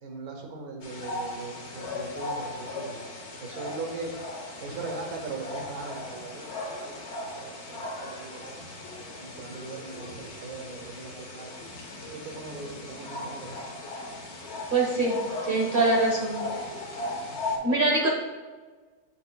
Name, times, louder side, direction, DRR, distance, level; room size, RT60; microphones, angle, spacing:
voice 1, 0.0-3.0 3.4-4.1 4.6-6.5 6.8-6.9 7.4-8.7 9.2-11.5 12.0-13.7 17.5-17.6, right 3 dB, 85° right, 2 dB, 1.5 m, -39 dB
sound 1, 0.8-17.6, left 2 dB, 55° left, 1.1 m, -37 dB
voice 2, 14.7-15.2 15.4-16.7 17.6-18.1, right 2 dB, 45° right, -2 dB, 0.9 m, -24 dB
6.7 x 6.6 x 2.2 m, 1.4 s
omnidirectional pair, 1.6 m